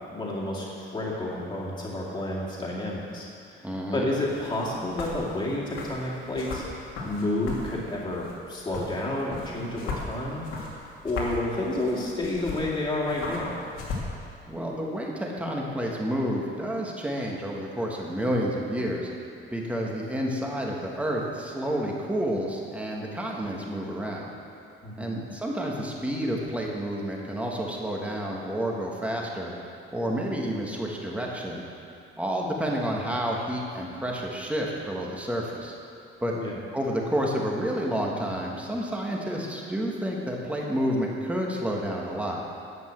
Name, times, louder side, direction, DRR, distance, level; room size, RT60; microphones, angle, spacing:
voice 1, 0.0-10.7 11.0-13.6 24.8-25.2 36.3-36.6, left 1 dB, 20° left, -4 dB, 2.3 m, -30 dB
voice 2, 3.6-4.1 14.5-19.1 19.5-24.3 25.0-29.5 29.9-31.6 32.2-35.7 36.2-36.3 36.7-42.4, equal, 5° right, -2 dB, 1.4 m, -30 dB
sound 1, 4.3-14.0, left 3 dB, 80° left, 2.5 m, -38 dB
11.0 x 8.2 x 7.7 m, 2.6 s
cardioid pair, 170°, 21 cm